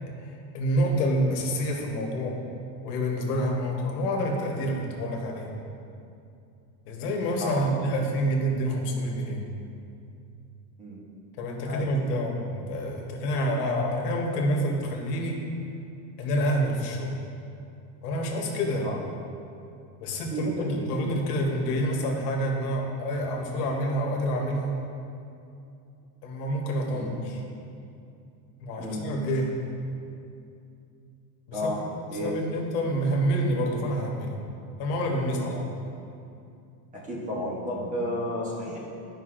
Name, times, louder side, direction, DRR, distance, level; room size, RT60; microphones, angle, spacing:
voice 1, 0.2-2.4 2.8-5.5 6.9-9.5 11.4-15.5 16.2-17.1 18.0-18.9 20.0-24.8 26.2-27.4 28.6-29.5 31.5-31.8 32.2-34.4 34.8-35.6, equal, 65° left, 0 dB, 1.4 m, -28 dB
voice 2, 7.4-7.7 10.8-11.0 11.7-11.9 18.8-19.0 20.3-20.9 26.9-27.1 28.8-29.0 31.5-31.8 32.1-32.4 35.4-35.6 36.9-38.8, equal, 15° right, -5 dB, 1.0 m, -32 dB
10.5 x 5.4 x 2.5 m, 2.6 s
supercardioid pair, 150°, 49 cm